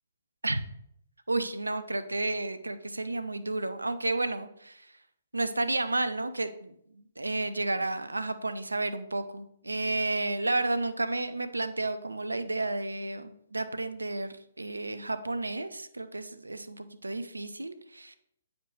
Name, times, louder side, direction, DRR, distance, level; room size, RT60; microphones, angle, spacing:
voice 1, 1.3-4.9 5.3-18.2, right 2 dB, 85° right, 11 dB, 0.6 m, -32 dB
8.8 x 5.1 x 3.2 m, 0.71 s
figure-of-eight pair, 130°, 0 cm